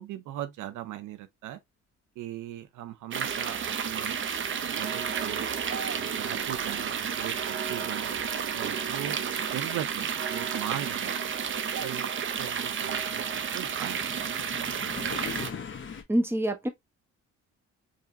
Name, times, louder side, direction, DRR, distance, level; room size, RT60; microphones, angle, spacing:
voice 1, 0.0-1.6 2.2-5.4 5.9-8.1 8.5-9.2 9.5-11.2 11.8-14.0, right 12 dB, 85° right, 0.6 m, -39 dB
sound 1, 3.1-15.5, right 7 dB, 40° right, 0.6 m, -31 dB
sound 2, 9.9-16.0, left 6 dB, 40° left, 1.0 m, -42 dB
voice 2, 16.1-16.7, right 1 dB, 10° right, 0.9 m, -26 dB
4.9 x 2.8 x 2.4 m
cardioid pair, 90°, 30 cm